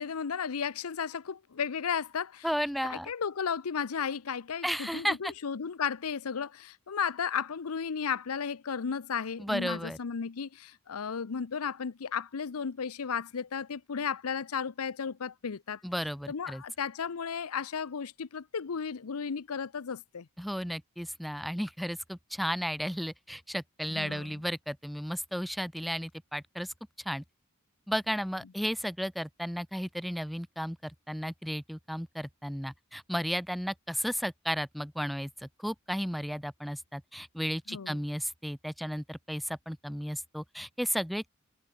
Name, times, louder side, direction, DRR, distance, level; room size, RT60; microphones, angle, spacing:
voice 1, 0.0-2.5 2.9-15.8 16.3-20.3 23.9-24.4 37.7-38.0, left 6 dB, 85° left, 0.7 m, -34 dB
voice 2, 2.4-3.1 4.6-5.3 9.4-10.0 15.8-16.6 20.4-26.7 27.0-27.2 27.9-41.3, equal, ahead, 0.5 m, -34 dB
head